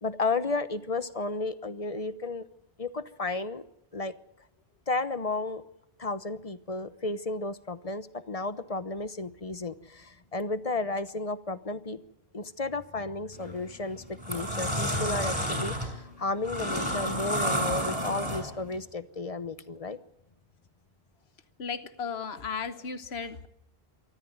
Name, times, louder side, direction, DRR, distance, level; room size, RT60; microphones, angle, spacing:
voice 1, 0.0-2.5 2.8-3.6 3.9-4.1 4.9-5.6 6.0-12.0 12.3-20.0, left 3 dB, 35° left, 13 dB, 1.0 m, -33 dB
sound 1, 13.3-13.6 14.0-18.7, equal, 25° right, 6.0 m, -30 dB
voice 2, 21.6-23.5, left 5 dB, 75° left, 11 dB, 1.4 m, -35 dB
24.5 x 14.0 x 9.5 m, 0.81 s
omnidirectional pair, 1.1 m